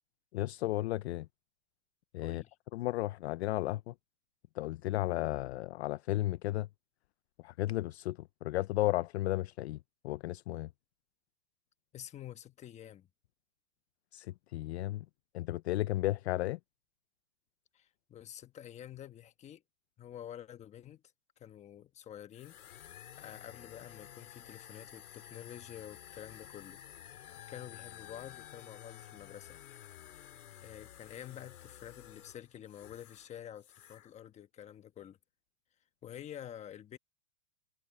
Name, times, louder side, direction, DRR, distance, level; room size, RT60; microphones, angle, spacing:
voice 1, 0.3-1.3 2.1-2.4 2.7-3.9 4.6-6.7 7.4-9.8 10.0-10.7 14.1-15.0 15.3-16.6, left 17 dB, 50° left, 0.5 m, -34 dB
voice 2, 2.2-2.6 11.9-13.1 17.7-19.6 20.0-21.0 21.4-26.8 27.5-29.6 30.1-30.4 30.6-35.2 36.0-37.0, left 10 dB, 15° left, 1.2 m, -49 dB
sound 1, 22.3-33.3 33.6-34.1, left 11 dB, 85° left, 4.5 m, -52 dB
supercardioid pair, 155°, 43 cm